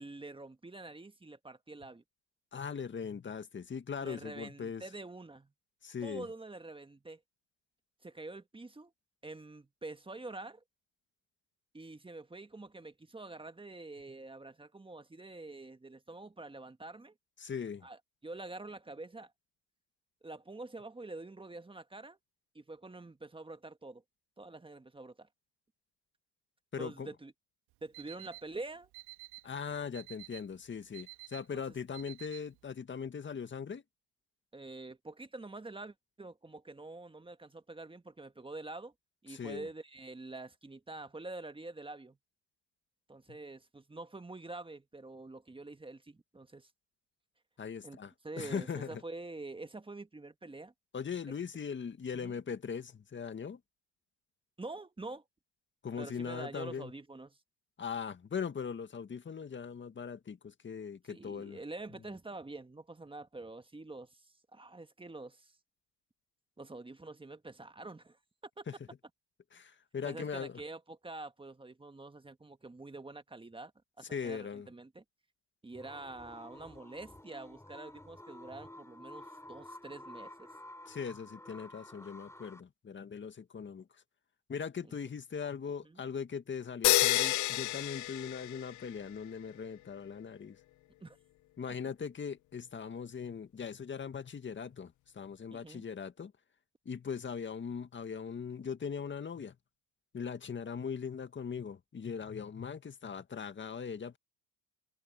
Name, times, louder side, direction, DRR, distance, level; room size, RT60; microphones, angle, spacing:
voice 1, 0.0-2.0 4.0-5.5 6.0-7.2 8.0-8.9 9.2-10.6 11.7-17.1 17.8-19.3 20.2-22.2 22.5-24.0 24.4-25.3 26.8-27.3 27.8-28.9 31.5-31.6 34.5-38.9 39.2-42.2 43.1-46.7 47.8-48.0 48.2-50.7 52.1-52.4 54.6-55.2 56.0-57.4 61.1-65.6 66.6-68.2 68.6-68.7 70.0-73.7 74.0-75.0 75.6-80.5 84.8-84.9 85.8-86.0 91.0-91.2 95.5-95.8, right 2 dB, 15° right, 1.7 m, -46 dB
voice 2, 2.5-4.8 5.8-6.3 17.4-17.9 26.7-27.1 29.4-33.8 39.3-39.7 47.6-49.0 50.9-53.6 55.8-56.9 57.8-61.6 68.7-68.8 69.5-70.6 74.1-74.7 80.9-83.8 84.5-90.6 91.6-96.3 96.9-99.6 100.1-104.2, left 6 dB, 30° left, 1.9 m, -40 dB
Alarm, 27.7-32.7, right 21 dB, 70° right, 2.1 m, -52 dB
sound 1, 75.7-82.6, left 1 dB, 5° left, 6.4 m, -51 dB
sound 2, 86.8-89.0, left 15 dB, 50° left, 0.7 m, -29 dB
supercardioid pair, 85°, 40 cm